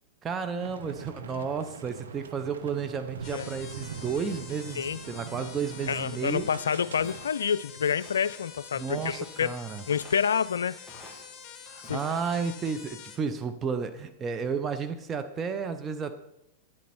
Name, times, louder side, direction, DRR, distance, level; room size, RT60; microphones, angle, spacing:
voice 1, 0.2-6.5 8.7-9.8 11.7-16.1, right 6 dB, 25° right, 0.8 m, -32 dB
sound 1, 0.6-7.3, right 6 dB, 70° right, 0.8 m, -42 dB
sound 2, 3.2-13.2, left 7 dB, 30° left, 1.6 m, -46 dB
voice 2, 5.9-9.5 9.9-10.8 11.9-12.0, left 7 dB, 75° left, 0.3 m, -28 dB
Walk footsteps, 7.0-7.5 8.0-8.4 9.0-9.5 9.9-10.3 10.9-11.3 11.8-12.3, left 1 dB, 5° left, 2.8 m, -49 dB
9.9 x 8.3 x 4.4 m
figure-of-eight pair, 100°, 0 cm